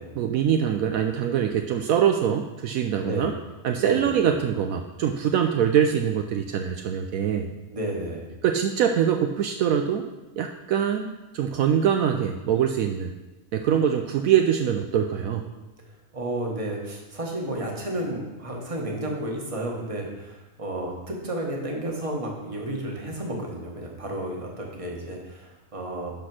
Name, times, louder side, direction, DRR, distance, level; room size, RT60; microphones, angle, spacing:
voice 1, 0.2-3.3 3.6-7.5 8.4-10.1 10.4-13.1 13.5-15.4, right 8 dB, 75° right, 5 dB, 1.0 m, -23 dB
voice 2, 3.8-4.2 7.7-8.2 15.5-26.1, right 1 dB, 25° right, -1 dB, 1.5 m, -32 dB
11.0 x 4.2 x 6.3 m, 1.1 s
omnidirectional pair, 1.5 m